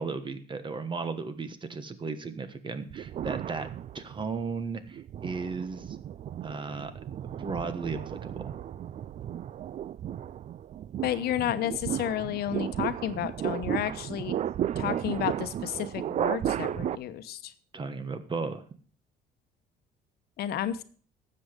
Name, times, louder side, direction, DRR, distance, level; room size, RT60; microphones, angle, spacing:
voice 1, 0.0-3.7 3.9-6.0 6.4-8.5 17.7-18.6, right 4 dB, 30° right, 11 dB, 1.2 m, -35 dB
sound 1, 2.9-4.3 4.9-16.9, right 10 dB, 45° right, 0.4 m, -34 dB
voice 2, 11.0-14.3 14.8-17.5 20.4-20.8, left 11 dB, 70° left, 11 dB, 1.0 m, -31 dB
12.5 x 7.9 x 5.1 m, 0.44 s
cardioid pair, 110°, 17 cm